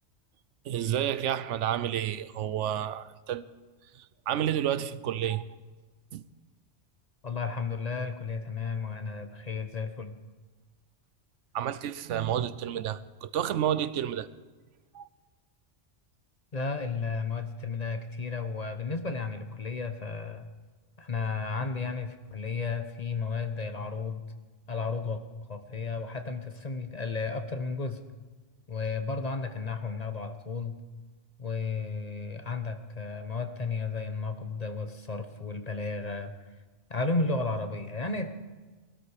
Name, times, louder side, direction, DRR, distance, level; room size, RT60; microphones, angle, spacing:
voice 1, 0.7-3.5 4.3-5.5 6.1-6.2 11.5-14.3 14.9-15.1, right 10 dB, 80° right, 1.0 m, -30 dB
voice 2, 7.2-10.1 16.5-20.5 21.0-24.2 24.7-25.2 25.5-28.0 28.7-30.8 31.4-36.3 36.9-38.3, left 4 dB, 35° left, 1.0 m, -33 dB
20.0 x 12.5 x 4.9 m
omnidirectional pair, 1.2 m